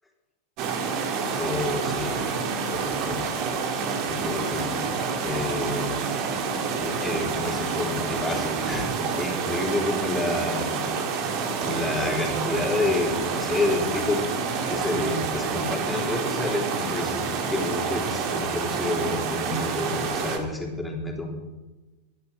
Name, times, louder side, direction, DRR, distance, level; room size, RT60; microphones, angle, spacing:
sound 1, 0.6-20.4, right 5 dB, 40° right, 2.3 m, -28 dB
voice 1, 1.4-2.4 2.7-3.4 4.1-4.8 5.2-6.0 6.4-10.7 11.6-14.2 14.7-21.3, left 2 dB, 5° left, 0 dB, 3.4 m, -29 dB
22.5 x 10.5 x 5.2 m, 1.2 s
figure-of-eight pair, 90°, 0 cm